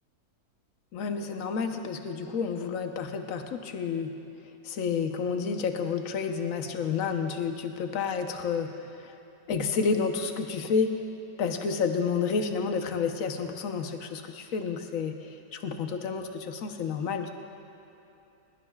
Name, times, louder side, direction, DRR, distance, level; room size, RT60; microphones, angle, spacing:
voice 1, 0.9-4.1 4.6-9.2 9.5-11.0 11.4-17.3, left 5 dB, 55° left, 5 dB, 1.2 m, -30 dB
22.5 x 20.5 x 2.4 m, 3.0 s
omnidirectional pair, 1.8 m